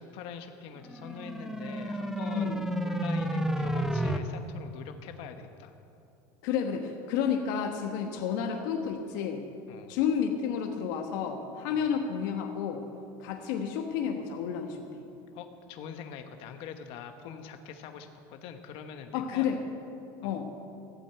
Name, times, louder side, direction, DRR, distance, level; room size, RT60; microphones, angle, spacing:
voice 1, 0.0-5.7 9.7-9.9 11.7-11.9 15.3-19.5 20.2-20.4, left 7 dB, 60° left, 6 dB, 1.1 m, -44 dB
sound 1, 0.8-4.2, right 1 dB, 5° right, 0.7 m, -31 dB
voice 2, 6.4-9.4 9.9-12.8 13.2-14.8 17.2-17.3 19.1-19.6 20.2-20.5, left 7 dB, 80° left, 3 dB, 1.2 m, -31 dB
15.0 x 9.0 x 7.8 m, 2.7 s
supercardioid pair, 135°, 11 cm